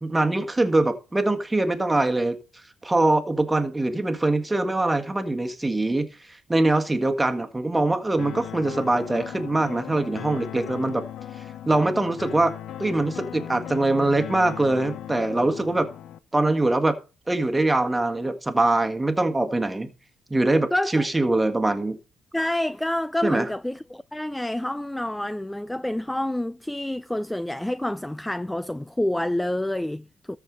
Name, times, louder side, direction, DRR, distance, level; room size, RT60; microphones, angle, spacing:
voice 1, 0.0-2.4 2.8-6.1 6.5-11.0 11.6-12.5 12.8-15.9 16.3-16.9 17.3-19.9 20.3-22.0 23.2-23.5, right 2 dB, 15° right, 1.7 m, -23 dB
sound 1, 8.2-16.2, left 10 dB, 70° left, 0.8 m, -37 dB
voice 2, 20.7-21.1 22.3-30.4, left 1 dB, 10° left, 0.4 m, -28 dB
13.5 x 4.8 x 5.2 m
cardioid pair, 90°, 0 cm